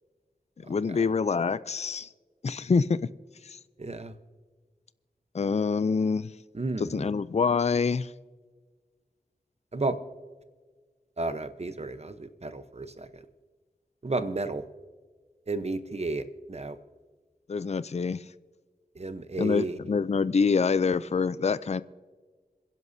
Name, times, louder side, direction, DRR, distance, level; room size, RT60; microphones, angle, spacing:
voice 1, 0.7-2.1 2.4-3.0 3.4-3.6 5.3-6.3 6.8-8.1 17.5-18.2 19.4-21.8, left 5 dB, 45° left, 16 dB, 0.4 m, -26 dB
voice 2, 3.8-4.1 6.5-7.1 9.7-10.0 11.2-13.1 14.0-14.6 15.5-16.8 18.9-19.8, right 2 dB, 40° right, 10 dB, 0.9 m, -32 dB
27.0 x 11.0 x 2.7 m, 1.4 s
wide cardioid pair, 65°, 16 cm